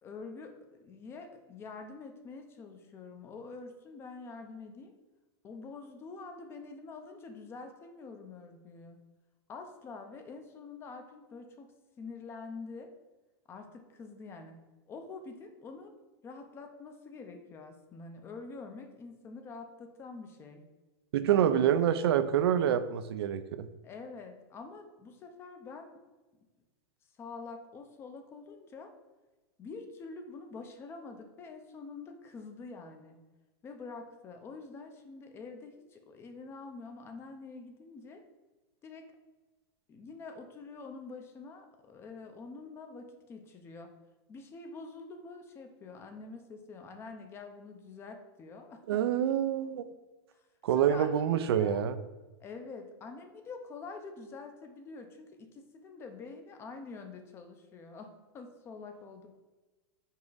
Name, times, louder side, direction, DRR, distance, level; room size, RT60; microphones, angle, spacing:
voice 1, 0.0-4.9 5.4-9.0 9.5-11.7 12.0-12.9 13.5-14.6 14.9-15.9 16.2-20.6 21.2-21.8 23.8-26.0 27.2-28.9 29.6-33.2 33.6-38.2 38.8-39.0 39.9-43.9 44.3-49.0 50.7-51.8 52.4-59.4, left 4 dB, 20° left, 6 dB, 0.6 m, -46 dB
voice 2, 21.1-23.7 48.9-49.8 50.6-51.9, right 10 dB, 85° right, 11 dB, 0.5 m, -27 dB
5.4 x 4.6 x 4.0 m, 1.2 s
supercardioid pair, 160°, 13 cm